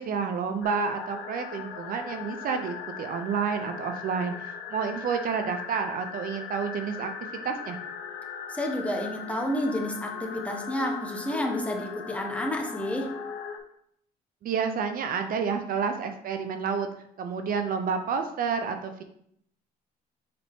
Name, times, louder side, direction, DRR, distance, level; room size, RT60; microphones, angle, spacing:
voice 1, 0.0-7.1 7.4-7.8 14.4-16.9 17.2-19.0, right 6 dB, 55° right, 6 dB, 0.7 m, -29 dB
sound 1, 0.6-13.6, left 6 dB, 90° left, 0.9 m, -39 dB
voice 2, 8.5-13.1, left 1 dB, 5° left, 1 dB, 1.2 m, -30 dB
6.7 x 4.2 x 3.6 m, 0.69 s
cardioid pair, 110°, 17 cm